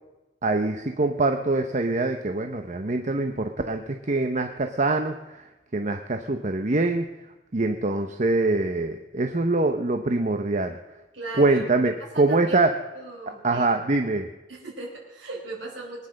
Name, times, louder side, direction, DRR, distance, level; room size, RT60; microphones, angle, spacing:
voice 1, 0.4-7.1 7.5-10.8 11.4-12.8 13.3-14.3, right 2 dB, 40° right, 6 dB, 0.9 m, -24 dB
voice 2, 11.1-12.6 12.9-13.7 14.5-16.1, right 2 dB, 65° right, -3 dB, 4.4 m, -38 dB
21.5 x 10.0 x 6.5 m, 1.1 s
head